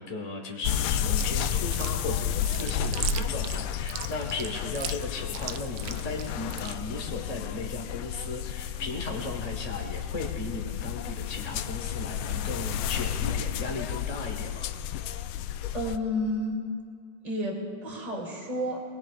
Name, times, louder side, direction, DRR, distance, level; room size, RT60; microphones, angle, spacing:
voice 1, 0.0-14.7, left 3 dB, 20° left, 1 dB, 1.1 m, -36 dB
sound 1, 0.6-16.0, left 9 dB, 75° left, 1.3 m, -32 dB
Chewing mastication, 1.2-6.7, right 11 dB, 75° right, 1.4 m, -37 dB
voice 2, 15.7-16.6 17.2-18.8, equal, 15° right, -1 dB, 2.6 m, -31 dB
24.0 x 21.0 x 2.4 m, 2.1 s
omnidirectional pair, 2.4 m